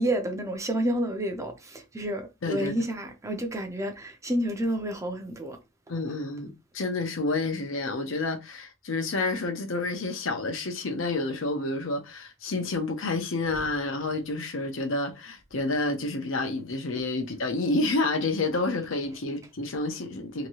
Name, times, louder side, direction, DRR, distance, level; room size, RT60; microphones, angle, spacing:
voice 1, 0.0-5.6, right 1 dB, 15° right, 0.5 m, -29 dB
voice 2, 2.4-2.8 5.9-20.5, left 2 dB, 75° left, 0.7 m, -29 dB
3.0 x 2.7 x 2.8 m
head